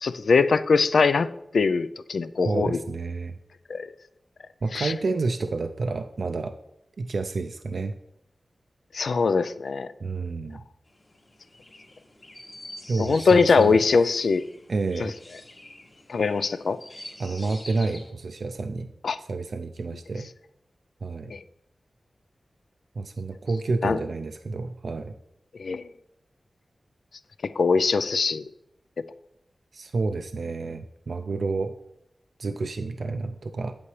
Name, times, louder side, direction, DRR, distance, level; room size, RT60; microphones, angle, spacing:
voice 1, 0.0-1.3 1.5-2.8 3.7-3.9 4.7-4.9 8.9-9.9 13.0-14.4 15.0-15.1 16.1-16.8 19.0-19.2 21.3-21.4 23.8-24.0 25.6-25.9 27.6-28.4, left 4 dB, 85° left, 14 dB, 0.4 m, -22 dB
voice 2, 2.4-3.3 4.6-6.5 7.0-7.9 10.0-10.6 12.9-13.8 14.7-15.1 17.2-18.9 19.2-20.3 21.0-21.3 23.0-25.2 29.7-31.7 32.4-33.7, right 3 dB, 75° right, 8 dB, 0.4 m, -29 dB
Chirp tweet, 10.9-18.1, left 1 dB, 50° left, 1.9 m, -45 dB
8.5 x 8.4 x 3.2 m, 0.84 s
wide cardioid pair, 65°, 0 cm